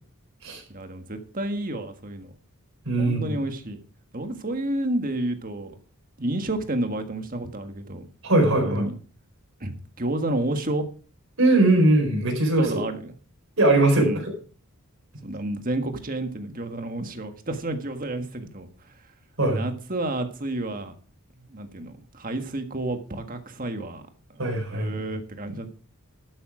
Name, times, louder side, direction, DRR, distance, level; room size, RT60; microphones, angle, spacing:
voice 1, 0.7-2.3 3.0-3.8 4.1-5.8 6.2-8.0 8.4-8.9 9.6-10.8 12.6-13.1 14.0-14.2 15.2-18.9 19.4-20.9 21.4-24.0 24.3-24.4 24.7-25.7, right 1 dB, 40° right, 7 dB, 1.6 m, -30 dB
voice 2, 2.9-3.4 8.2-8.8 11.4-12.7 13.6-14.3 19.4-19.6 24.4-24.9, right 2 dB, 65° right, 2 dB, 4.4 m, -20 dB
12.5 x 8.5 x 4.9 m, 0.38 s
head